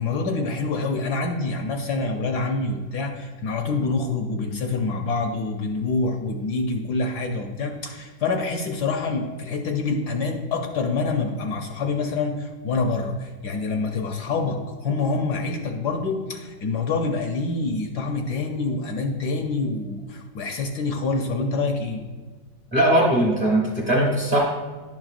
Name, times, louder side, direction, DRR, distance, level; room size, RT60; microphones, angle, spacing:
voice 1, 0.0-22.0, left 3 dB, 70° left, 3 dB, 1.1 m, -26 dB
voice 2, 22.7-24.4, right 1 dB, 35° right, -2 dB, 0.9 m, -20 dB
11.0 x 6.0 x 2.4 m, 1.3 s
omnidirectional pair, 2.1 m